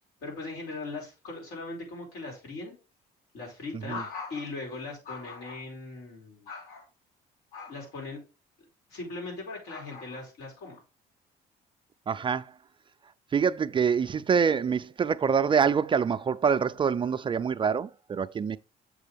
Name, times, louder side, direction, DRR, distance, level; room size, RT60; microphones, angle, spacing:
voice 1, 0.2-2.7 3.3-6.9 7.5-8.2 8.9-10.8, left 3 dB, 85° left, 4.8 m, -39 dB
voice 2, 12.1-12.5 13.3-18.6, right 6 dB, 30° right, 0.4 m, -25 dB
7.5 x 6.2 x 3.4 m
cardioid pair, 110°, 17 cm